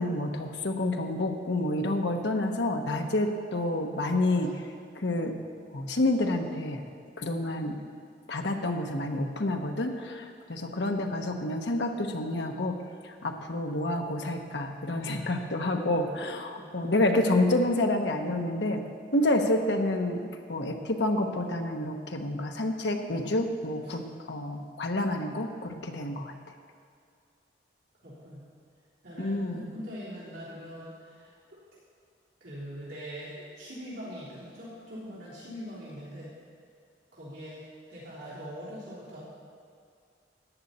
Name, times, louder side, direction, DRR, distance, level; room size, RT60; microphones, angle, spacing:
voice 1, 0.0-4.5 5.0-5.4 5.7-6.8 7.2-7.8 8.3-12.8 13.2-18.8 19.1-26.3 29.2-29.7, left 1 dB, 70° left, 4 dB, 1.0 m, -28 dB
voice 2, 4.3-4.6 16.5-17.5 23.8-23.9 28.0-28.5 29.0-31.6 32.4-36.3 37.1-37.6 37.9-39.2, equal, 80° right, -9 dB, 3.5 m, -43 dB
14.0 x 9.6 x 4.2 m, 2.2 s
head